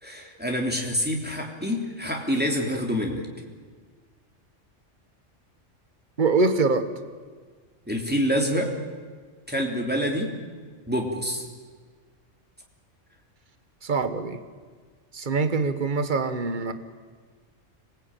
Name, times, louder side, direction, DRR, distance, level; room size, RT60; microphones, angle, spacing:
voice 1, 0.0-3.3 7.9-8.7 9.5-10.3 10.9-11.4, equal, 5° right, 0 dB, 3.2 m, -26 dB
voice 2, 6.2-6.9 13.8-14.4 15.1-16.7, right 4 dB, 40° right, 10 dB, 1.5 m, -24 dB
26.0 x 20.5 x 9.1 m, 1.5 s
omnidirectional pair, 1.3 m